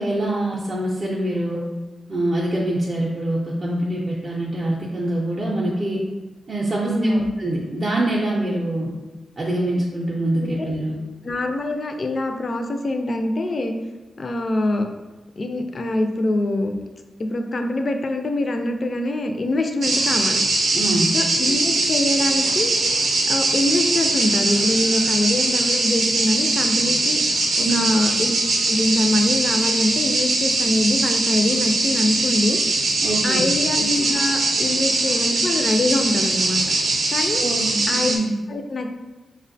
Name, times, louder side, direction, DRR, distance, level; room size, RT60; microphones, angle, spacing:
voice 1, 0.0-1.6 2.1-6.0 6.5-8.9 9.4-11.0 20.7-21.1 27.6-27.9 33.0-33.4 37.4-38.3, right 1 dB, 35° right, -5 dB, 0.5 m, -24 dB
voice 2, 6.8-7.3 10.4-10.5 11.2-13.7 14.2-14.9 15.4-16.8 17.2-20.4 21.1-22.7 23.2-27.2 27.6-28.3 28.7-32.6 33.2-36.6 37.1-37.4 37.9-38.1 38.5-38.9, left 1 dB, 40° left, 5 dB, 0.3 m, -24 dB
sound 1, 19.8-38.2, right 2 dB, 80° right, 0.5 m, -21 dB
5.1 x 2.1 x 2.6 m, 1.2 s
wide cardioid pair, 130°, 0 cm